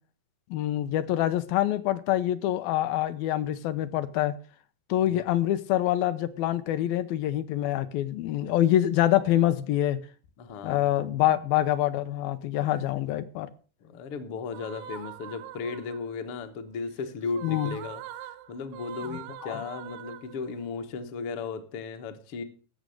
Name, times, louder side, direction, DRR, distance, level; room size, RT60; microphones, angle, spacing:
voice 1, 0.5-4.4 4.9-10.0 10.6-13.5 17.4-17.8 19.1-19.6, left 13 dB, 80° left, 2.5 m, -26 dB
voice 2, 10.4-11.2 12.6-13.1 13.8-18.0 18.5-22.4, left 5 dB, 60° left, 1.4 m, -36 dB
sound 1, 14.5-16.2 17.3-20.7, right 10 dB, 90° right, 2.7 m, -43 dB
14.5 x 6.3 x 6.3 m
omnidirectional pair, 4.3 m